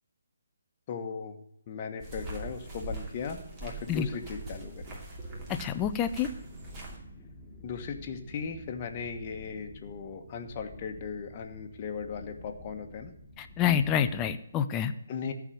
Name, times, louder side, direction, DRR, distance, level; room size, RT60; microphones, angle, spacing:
voice 1, 0.9-1.4 1.7-5.0 7.6-13.1 15.1-15.3, left 6 dB, 35° left, 3 dB, 1.3 m, -37 dB
sound 1, 2.0-7.0, right 2 dB, 25° right, 2.6 m, -42 dB
voice 2, 5.6-6.3 13.4-14.9, left 9 dB, 20° left, 8 dB, 0.6 m, -27 dB
sound 2, 5.9-14.3, left 1 dB, ahead, 3.1 m, -50 dB
14.0 x 4.9 x 7.9 m, 0.79 s
figure-of-eight pair, 145°, 0 cm